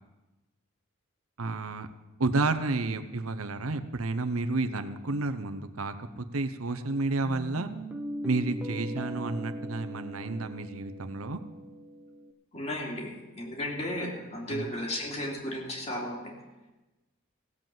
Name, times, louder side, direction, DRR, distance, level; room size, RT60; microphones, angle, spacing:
voice 1, 1.4-1.9 2.2-7.7 8.2-11.4 14.5-14.7, right 3 dB, 90° right, 9 dB, 0.9 m, -31 dB
Guitar, 7.2-12.3, equal, 5° right, 1.0 m, -39 dB
voice 2, 12.5-16.3, left 1 dB, 30° left, -1 dB, 2.8 m, -34 dB
16.5 x 7.8 x 7.6 m, 1.1 s
head